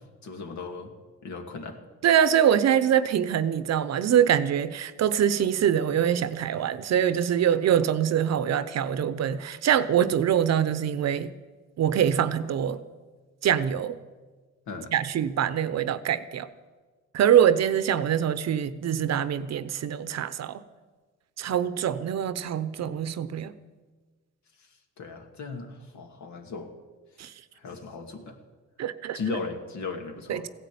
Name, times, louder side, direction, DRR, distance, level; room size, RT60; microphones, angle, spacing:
voice 1, 0.2-0.9 1.2-1.8 14.7-14.9 24.6-24.7 25.0-26.7 27.6-28.4 29.1-30.5, left 4 dB, 70° left, 4 dB, 2.3 m, -36 dB
voice 2, 2.0-11.3 11.8-12.8 13.4-14.0 14.9-16.5 17.1-20.6 21.4-23.5 27.2-27.3 28.8-29.2 30.3-30.5, right 9 dB, 60° right, 14 dB, 0.9 m, -24 dB
16.0 x 10.5 x 8.6 m, 1.4 s
cardioid pair, 90°, 30 cm